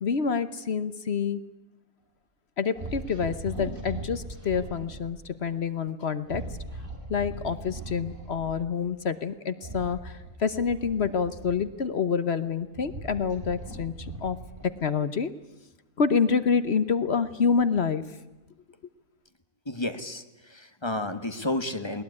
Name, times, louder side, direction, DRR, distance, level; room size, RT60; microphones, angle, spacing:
voice 1, 0.0-1.4 2.6-6.4 7.1-14.4 14.6-15.3 16.0-18.0, left 6 dB, 55° left, 13 dB, 1.2 m, -27 dB
sound 1, 2.7-5.1 6.2-8.6 9.6-11.9 12.4-14.8, right 2 dB, 40° right, 4.5 m, -39 dB
voice 2, 19.6-22.0, left 1 dB, 20° left, 9 dB, 1.5 m, -31 dB
21.0 x 20.0 x 9.7 m, 1.1 s
omnidirectional pair, 1.4 m